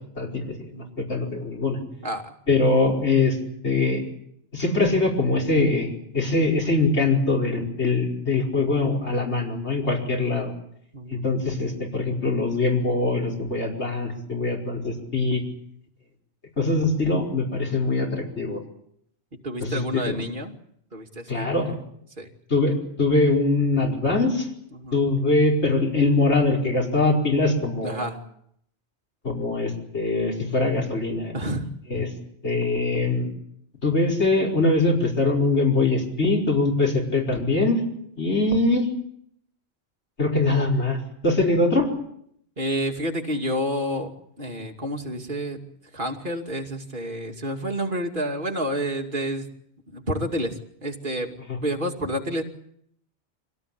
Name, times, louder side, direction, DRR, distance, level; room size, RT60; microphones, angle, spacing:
voice 1, 0.2-0.5 1.0-1.8 2.5-3.4 3.6-4.0 4.5-10.5 11.1-15.4 16.6-18.6 19.6-20.2 21.3-21.7 22.5-24.5 24.9-28.1 29.2-31.3 31.9-32.1 32.4-33.3 33.8-37.8 38.2-38.9 40.2-41.0 41.2-41.9, left 3 dB, 85° left, 2 dB, 5.4 m, -22 dB
voice 2, 0.7-1.1 2.0-2.3 10.9-11.2 19.4-20.6 20.9-21.5 22.2-22.3 24.7-25.0 27.8-28.2 31.3-31.7 42.6-44.1 44.4-45.7 45.9-49.5 49.9-52.4, equal, 50° right, 2 dB, 2.8 m, -29 dB
25.0 x 17.5 x 8.7 m, 0.71 s
omnidirectional pair, 1.1 m